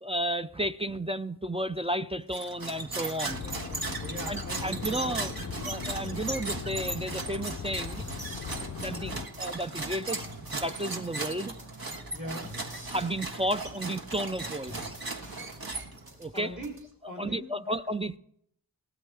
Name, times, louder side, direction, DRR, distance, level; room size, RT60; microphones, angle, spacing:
voice 1, 0.0-3.5 4.3-8.0 8.8-11.5 12.9-15.0 16.2-16.5 17.2-18.2, right 1 dB, 15° right, 0.4 m, -33 dB
sound 1, 2.3-16.2, right 2 dB, 65° right, 1.4 m, -37 dB
voice 2, 3.2-5.4 8.8-9.2 12.1-12.5 16.3-16.7 17.0-17.6, equal, 50° right, 3.1 m, -41 dB
sound 2, 3.3-9.3, left 7 dB, 45° left, 0.4 m, -39 dB
sound 3, 7.9-16.9, right 1 dB, 85° right, 3.7 m, -49 dB
17.5 x 12.5 x 3.3 m
wide cardioid pair, 50°, 38 cm